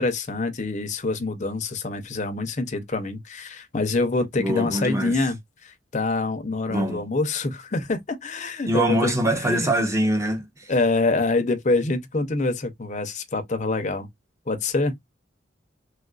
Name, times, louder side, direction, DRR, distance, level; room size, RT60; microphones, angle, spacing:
voice 1, 0.0-9.7 10.7-14.1 14.5-14.9, left 3 dB, 40° left, 0.6 m, -26 dB
voice 2, 4.4-5.2 6.7-7.1 8.7-10.7, right 1 dB, 15° right, 0.8 m, -24 dB
3.4 x 2.4 x 2.4 m
head